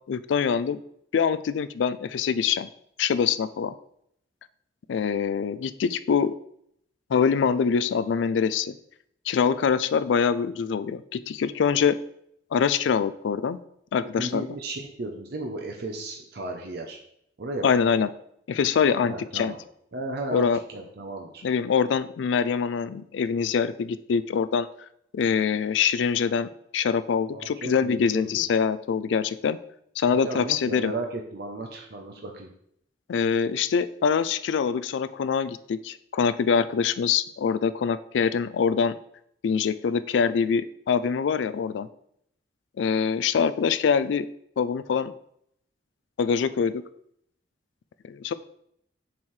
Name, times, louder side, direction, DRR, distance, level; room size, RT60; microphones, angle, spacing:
voice 1, 0.1-0.8 1.1-2.7 3.0-3.7 4.9-6.3 7.1-8.7 9.3-12.0 12.5-13.6 13.9-14.5 17.6-18.1 18.5-19.5 20.3-20.6 21.4-24.7 25.1-29.6 30.0-30.9 33.1-39.0 39.4-41.9 42.8-44.3 44.6-45.1 46.2-46.8 48.1-48.3, left 6 dB, 80° left, 15 dB, 0.3 m, -24 dB
voice 2, 14.2-17.0 17.4-17.7 19.0-19.6 19.9-21.4 27.3-28.5 30.1-32.5, right 2 dB, 60° right, 1 dB, 0.7 m, -34 dB
7.0 x 4.4 x 3.2 m, 0.71 s
head